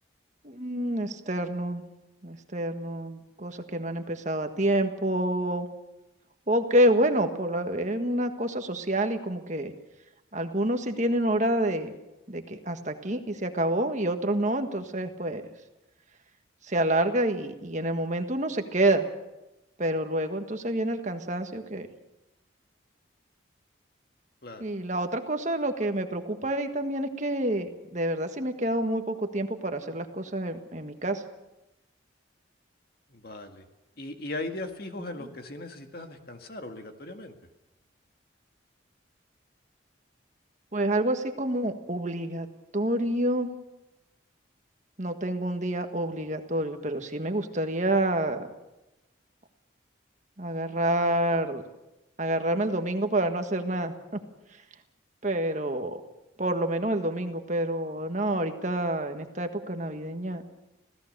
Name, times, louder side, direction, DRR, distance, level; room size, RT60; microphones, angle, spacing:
voice 1, 0.4-1.8 2.2-5.7 6.5-9.7 10.3-11.9 12.3-15.4 16.6-19.0 19.8-21.9 24.6-31.2 40.7-42.5 42.7-43.5 45.0-48.5 50.4-51.6 52.2-53.9 55.2-56.0 56.4-60.4, right 1 dB, 40° right, 6 dB, 1.6 m, -28 dB
voice 2, 33.1-33.7 34.0-37.3, left 2 dB, 50° left, 5 dB, 1.9 m, -38 dB
26.0 x 17.5 x 6.7 m, 0.97 s
head